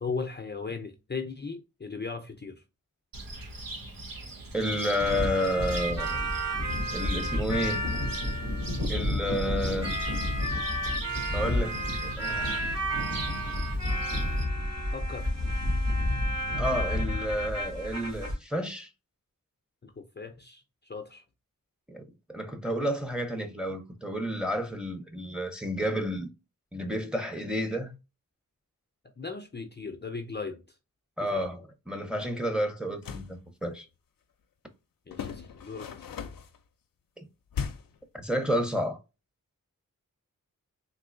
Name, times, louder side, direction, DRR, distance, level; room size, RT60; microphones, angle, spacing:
voice 1, 0.0-2.6 9.6-9.8 14.9-15.3 19.8-21.2 29.2-30.8 31.2-31.4 35.1-36.1, left 4 dB, 30° left, 0.5 m, -38 dB
Cricket, 3.1-14.4, right 2 dB, 85° right, 0.9 m, -41 dB
voice 2, 4.5-6.2 6.9-7.8 8.9-9.9 11.3-12.9 16.5-18.9 21.9-22.0 22.3-26.3 26.7-27.9 31.2-33.9 37.2-37.3 38.1-39.0, equal, 5° right, 0.8 m, -31 dB
sound 1, 5.0-18.3, equal, 50° right, 1.8 m, -30 dB
sound 2, 32.8-33.4 35.1-36.6 37.5-38.0, left 6 dB, 80° left, 0.5 m, -37 dB
3.6 x 2.7 x 2.5 m
wide cardioid pair, 65°, 33 cm